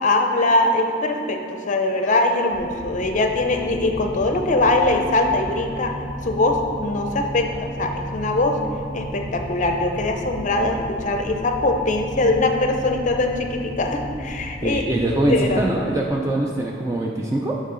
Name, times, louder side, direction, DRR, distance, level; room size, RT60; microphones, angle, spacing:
voice 1, 0.0-5.9 6.2-8.6 8.9-14.9 15.2-15.6, left 2 dB, 40° left, 4 dB, 0.5 m, -22 dB
sound 1, 2.5-15.7, equal, 80° right, 1.2 m, -34 dB
voice 2, 14.6-17.6, right 1 dB, 15° right, -1 dB, 0.3 m, -23 dB
8.2 x 4.7 x 3.7 m, 2.5 s
head